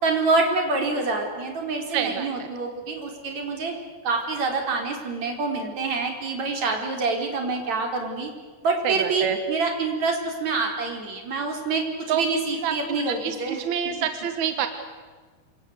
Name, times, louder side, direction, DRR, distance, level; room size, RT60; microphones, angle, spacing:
voice 1, 0.0-3.7 4.0-8.3 8.6-13.6 13.9-14.1, right 3 dB, 40° right, 3 dB, 5.1 m, -26 dB
voice 2, 1.9-2.5 8.8-9.4 12.1-12.2 12.6-14.7, right 9 dB, 60° right, 8 dB, 2.0 m, -27 dB
27.5 x 26.0 x 8.1 m, 1.5 s
omnidirectional pair, 4.9 m